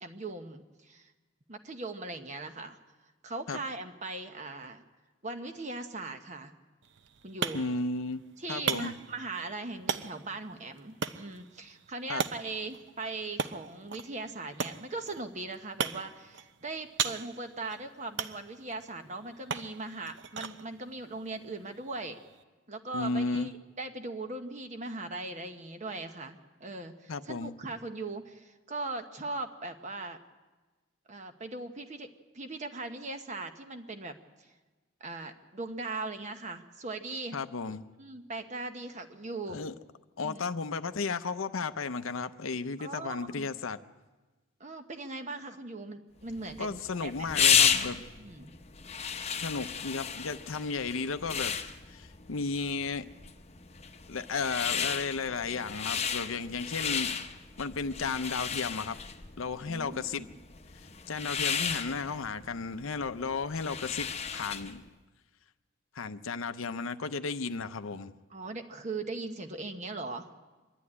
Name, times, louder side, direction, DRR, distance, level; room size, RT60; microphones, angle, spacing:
voice 1, 0.0-1.1 1.5-2.8 3.2-4.8 5.2-6.5 7.2-7.6 8.4-22.2 22.7-23.5 23.8-30.2 31.1-32.1 32.3-34.1 35.0-37.4 38.0-39.6 40.2-40.5 42.8-43.5 44.6-47.3 48.2-48.5 59.7-60.4 68.3-70.3, right 3 dB, 35° right, 7 dB, 1.0 m, -39 dB
sound 1, 6.8-22.4, right 6 dB, 60° right, 0.7 m, -39 dB
voice 2, 7.5-8.2 8.5-9.0 12.1-12.2 22.9-23.5 27.1-27.5 37.3-37.8 39.5-39.7 40.2-43.8 46.6-48.0 49.4-51.5 51.9-53.1 54.1-57.2 57.6-59.0 59.4-60.3 61.1-64.8 65.9-68.1, left 4 dB, 75° left, 10 dB, 0.7 m, -34 dB
sound 2, 46.3-64.8, left 7 dB, 30° left, 0.9 m, -33 dB
24.5 x 11.5 x 9.7 m, 1.3 s
head